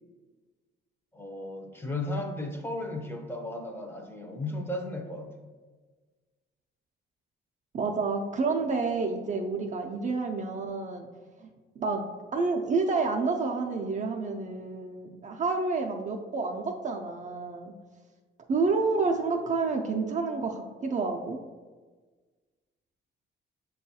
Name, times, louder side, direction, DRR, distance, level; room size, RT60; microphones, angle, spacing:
voice 1, 1.1-5.3, left 1 dB, 10° left, 2 dB, 0.6 m, -35 dB
voice 2, 7.7-11.1 11.4-11.5 11.8-12.1 12.3-17.7 18.5-21.4, right 4 dB, 40° right, 2 dB, 0.4 m, -29 dB
6.6 x 2.3 x 2.7 m, 1.4 s
cardioid pair, 90°, 20 cm